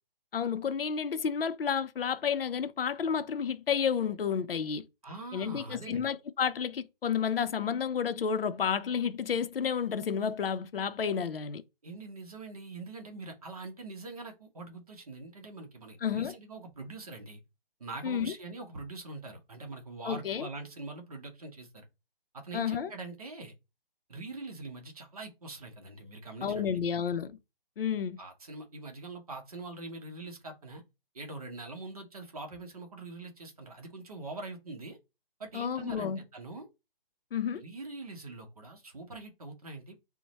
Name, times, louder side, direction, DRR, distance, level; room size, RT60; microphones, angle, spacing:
voice 1, 0.3-4.9 5.3-11.6 16.0-16.3 18.0-18.3 20.0-20.5 22.5-22.9 26.4-27.4 27.8-28.2 35.5-36.2 37.3-37.6, left 7 dB, 80° left, 0.6 m, -31 dB
voice 2, 5.0-6.1 11.8-17.4 17.8-21.9 22.3-23.5 24.1-26.6 28.2-30.8 31.1-35.0 35.4-36.7 37.6-39.9, right 3 dB, 40° right, 0.8 m, -43 dB
4.4 x 2.1 x 4.0 m
hypercardioid pair, 175°, 29 cm